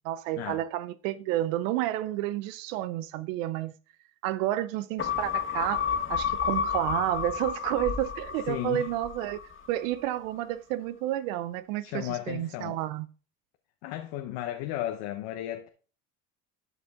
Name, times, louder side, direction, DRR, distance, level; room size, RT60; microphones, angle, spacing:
voice 1, 0.0-3.7 4.2-9.4 9.7-13.1, right 14 dB, 90° right, 0.6 m, -30 dB
sound 1, 5.0-9.7 10.0-10.1, left 8 dB, 30° left, 1.8 m, -31 dB
voice 2, 8.5-8.9 11.8-12.8 13.8-15.7, left 13 dB, 75° left, 1.0 m, -34 dB
11.0 x 5.1 x 3.6 m
supercardioid pair, 80°, 39 cm